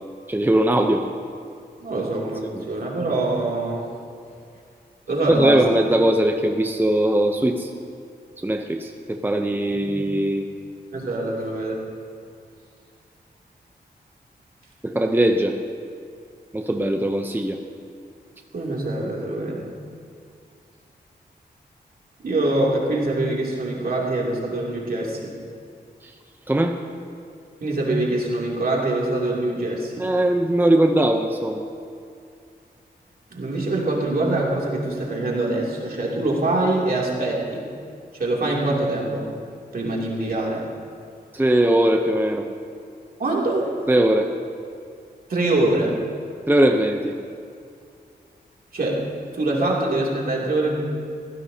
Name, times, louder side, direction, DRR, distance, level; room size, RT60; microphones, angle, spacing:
voice 1, 0.3-1.1 1.9-2.0 2.5-2.6 5.3-7.7 8.4-10.5 14.8-15.6 16.5-17.6 26.0-26.1 26.5-26.8 30.0-31.7 41.3-42.5 43.9-44.3 46.5-47.2, right 1 dB, 10° right, 4 dB, 0.8 m, -20 dB
voice 2, 1.8-2.4 2.7-3.9 5.1-5.6 9.7-10.0 10.9-11.9 18.5-19.7 22.2-25.4 27.6-30.1 33.3-37.7 38.1-39.3 39.7-40.7 43.2-43.8 45.3-46.0 48.7-50.8, right 2 dB, 60° right, -3 dB, 3.0 m, -24 dB
20.0 x 15.5 x 2.9 m, 2.4 s
cardioid pair, 65°, 17 cm